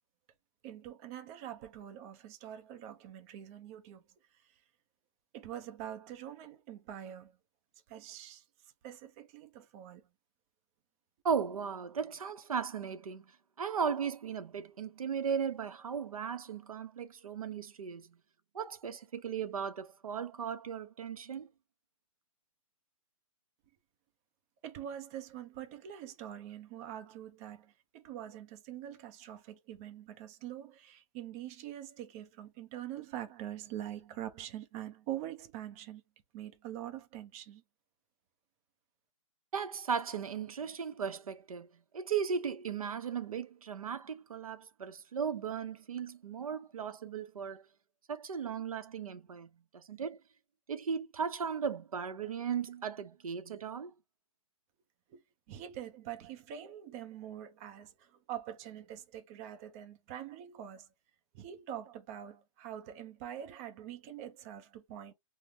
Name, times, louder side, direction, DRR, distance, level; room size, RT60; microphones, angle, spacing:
voice 1, 0.6-4.0 5.3-7.3 7.9-8.4 8.8-10.0 24.6-36.0 36.3-37.6 55.1-55.2 55.5-60.9 61.3-65.1, right 11 dB, 25° right, 0.6 m, -44 dB
voice 2, 11.2-13.2 13.6-18.1 18.5-21.5 39.5-41.7 41.9-47.6 48.1-50.2 50.7-53.9, right 7 dB, 85° right, 0.6 m, -36 dB
3.4 x 2.0 x 2.7 m
hypercardioid pair, 145°, 18 cm